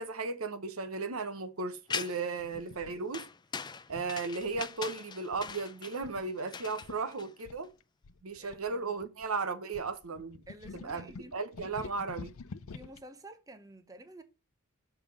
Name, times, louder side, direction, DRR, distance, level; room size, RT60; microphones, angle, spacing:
voice 1, 0.0-3.2 3.9-7.7 8.2-10.4 10.8-12.3, right 4 dB, 80° right, 1.0 m, -35 dB
sound 1, 1.9-2.4 3.1-7.6, left 6 dB, 20° left, 0.4 m, -41 dB
sound 2, 2.4-3.0 3.9-4.8 5.3-5.6 6.0-6.2 6.5-6.6 6.8-7.0 7.5-9.3 9.7-13.0, left 4 dB, 75° left, 0.6 m, -48 dB
voice 2, 8.4-9.0 10.5-11.3 11.8-11.9 12.7-14.2, right 1 dB, 15° right, 0.7 m, -51 dB
6.9 x 3.7 x 6.2 m
head